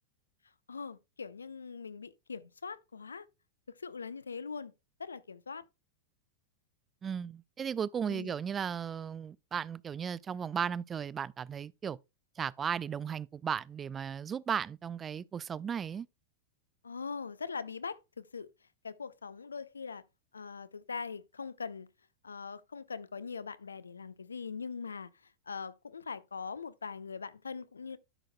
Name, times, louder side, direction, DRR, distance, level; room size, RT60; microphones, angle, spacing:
voice 1, 0.7-3.3 3.7-4.7 5.0-5.6 8.1-8.3 16.8-18.5 18.8-20.0 20.3-21.9 22.2-25.1 25.5-28.0, left 5 dB, 75° left, 0.5 m, -41 dB
voice 2, 7.0-12.0 12.4-16.1, right 7 dB, 20° right, 0.3 m, -35 dB
13.0 x 6.3 x 2.2 m
figure-of-eight pair, 90°, 0 cm